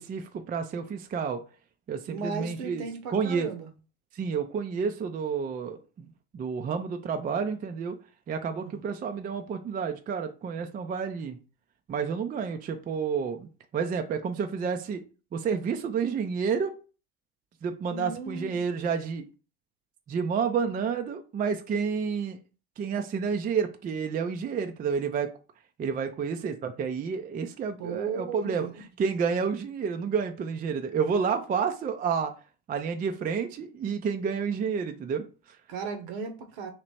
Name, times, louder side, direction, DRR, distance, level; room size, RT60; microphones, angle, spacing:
voice 1, 0.0-1.4 1.9-2.8 3.1-3.5 4.1-8.0 8.3-11.4 11.9-15.0 15.3-16.7 17.6-19.3 20.1-22.4 22.8-25.3 25.8-28.7 29.0-32.3 32.7-35.6, right 6 dB, 20° right, 0.4 m, -30 dB
voice 2, 2.1-3.7 8.6-8.8 17.9-18.6 27.8-28.7 35.7-36.7, right 5 dB, 60° right, 1.0 m, -36 dB
3.2 x 2.9 x 4.1 m
hypercardioid pair, 75°, 43 cm